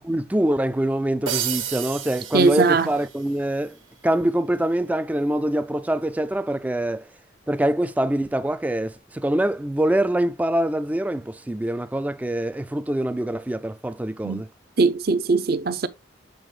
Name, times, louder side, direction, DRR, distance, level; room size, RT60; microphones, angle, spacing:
voice 1, 0.0-7.1 7.5-14.5, right 1 dB, 10° right, 0.3 m, -24 dB
sound 1, 1.3-3.3, right 9 dB, 85° right, 1.3 m, -31 dB
voice 2, 2.3-2.9 14.2-14.4 14.8-15.9, right 4 dB, 50° right, 0.6 m, -20 dB
7.8 x 4.6 x 3.3 m
head